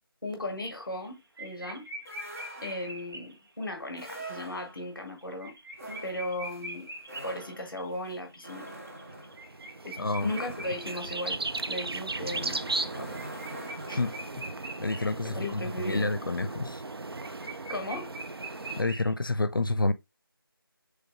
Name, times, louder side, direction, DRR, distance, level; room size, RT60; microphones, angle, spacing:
voice 1, 0.2-1.9 2.6-5.6 6.0-6.9 7.2-8.7 9.8-11.4 11.7-13.2 13.8-14.0 14.9-16.1 17.7-18.1, left 1 dB, 5° right, 0.8 m, -37 dB
sound 1, 0.7-1.1 1.4-3.6 4.3-4.4 4.6-4.7 5.1-11.9 12.3-15.2 15.5-15.6 15.9-19.1, right 2 dB, 70° right, 1.0 m, -44 dB
sound 2, 2.0-3.1 3.9-5.0 5.7-14.4, right 1 dB, 35° right, 0.9 m, -46 dB
sound 3, 9.1-18.8, right 3 dB, 85° right, 0.5 m, -37 dB
voice 2, 10.0-10.3 14.0-14.1 14.8-16.8 18.8-19.9, left 2 dB, 65° left, 0.5 m, -28 dB
3.4 x 2.8 x 4.5 m
figure-of-eight pair, 170°, 12 cm